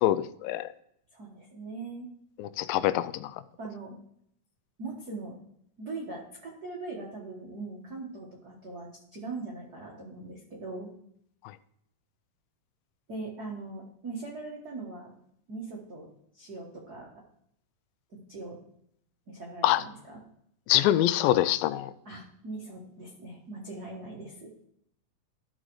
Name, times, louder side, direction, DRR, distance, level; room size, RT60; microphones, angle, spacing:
voice 1, 0.0-0.7 2.4-3.3 19.6-19.8 20.7-21.9, left 13 dB, 85° left, 15 dB, 2.3 m, -25 dB
voice 2, 1.1-2.1 3.6-4.0 4.8-5.4 5.8-10.9 13.1-15.1 15.5-16.1 16.3-17.1 18.3-18.6 19.3-20.2 22.0-24.5, right 3 dB, 55° right, -3 dB, 1.1 m, -40 dB
13.0 x 6.3 x 3.1 m, 0.73 s
omnidirectional pair, 4.1 m